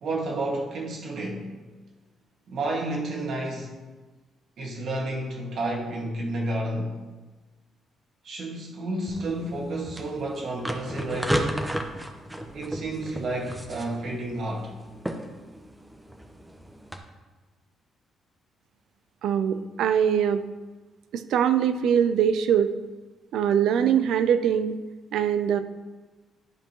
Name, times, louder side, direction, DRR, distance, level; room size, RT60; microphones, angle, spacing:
voice 1, 0.0-1.5 2.5-3.8 4.6-6.9 8.2-11.7 12.5-14.7, right 1 dB, 65° right, -1 dB, 1.9 m, -31 dB
sound 1, 9.1-17.0, right 1 dB, 10° right, 0.9 m, -34 dB
voice 2, 19.2-20.4 21.1-22.7 23.3-24.7 25.1-25.6, right 8 dB, 80° right, 10 dB, 0.4 m, -22 dB
11.0 x 5.2 x 3.0 m, 1.2 s
cardioid pair, 90°, 0 cm